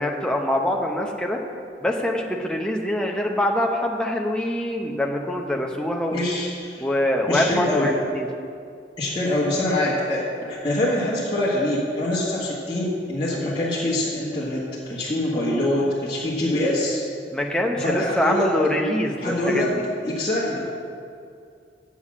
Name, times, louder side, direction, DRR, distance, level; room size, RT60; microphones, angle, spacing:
voice 1, 0.0-1.4 1.8-6.2 6.8-8.3 13.3-13.5 17.3-19.8, left 1 dB, 5° left, 0 dB, 0.8 m, -24 dB
voice 2, 6.1-6.8 7.3-7.9 9.0-17.0 17.7-18.5 19.2-19.7 20.0-20.7, left 1 dB, 25° left, -9 dB, 1.5 m, -24 dB
8.4 x 7.1 x 7.3 m, 2.4 s
head